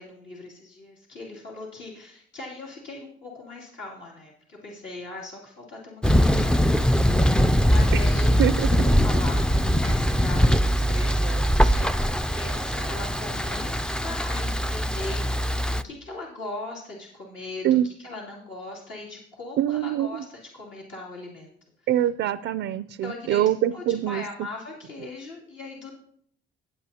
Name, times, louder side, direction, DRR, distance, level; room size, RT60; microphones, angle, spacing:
voice 1, 0.0-21.5 23.0-23.4 23.7-26.0, left 2 dB, 70° left, -5 dB, 2.8 m, -40 dB
Thunder, 6.0-15.8, equal, 5° left, 0.4 m, -22 dB
voice 2, 19.6-20.2 21.9-24.2, right 12 dB, 80° right, 14 dB, 0.4 m, -24 dB
17.5 x 7.5 x 2.8 m, 0.65 s
cardioid pair, 90°, 20 cm